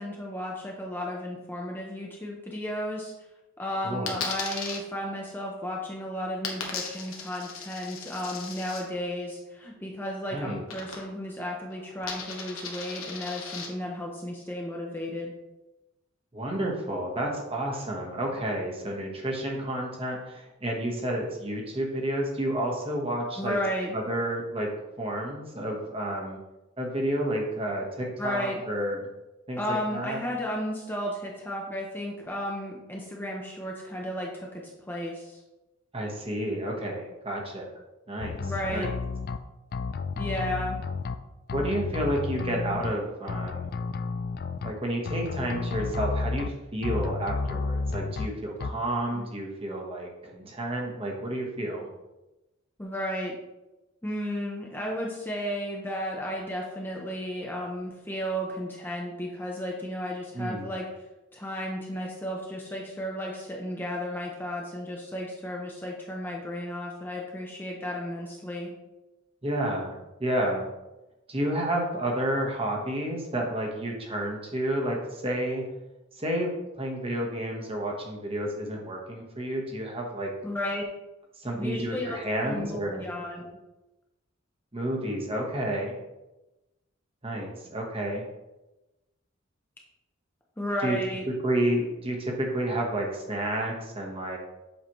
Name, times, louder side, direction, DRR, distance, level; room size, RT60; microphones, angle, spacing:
voice 1, 0.0-3.1 3.6-15.3 23.4-23.9 28.2-28.6 29.6-35.4 38.4-38.9 40.2-40.8 49.1-49.3 52.8-53.4 54.0-60.8 61.3-68.7 80.4-80.8 81.6-83.6 90.6-91.2, equal, 10° left, -2 dB, 0.7 m, -33 dB
voice 2, 3.8-4.2 10.3-10.6 16.3-23.6 23.9-24.7 25.0-26.4 26.8-29.1 29.5-30.2 35.9-37.7 38.1-38.3 38.7-38.9 41.5-43.7 44.6-51.9 60.3-60.7 69.4-70.7 71.3-75.6 76.2-80.3 81.4-83.0 84.7-86.0 87.2-88.2 90.8-91.0 91.4-94.4, right 1 dB, 30° right, -1 dB, 1.2 m, -30 dB
Coin (dropping), 4.1-4.8 6.4-8.8 10.7-11.3 11.6-13.7, left 5 dB, 85° left, 1.2 m, -37 dB
sound 1, 38.2-39.4 39.7-41.1 41.5-42.9 43.3-44.7 45.1-46.5 46.8-48.3 48.6-48.7, left 4 dB, 45° left, 0.3 m, -31 dB
7.4 x 5.0 x 3.0 m, 1.0 s
head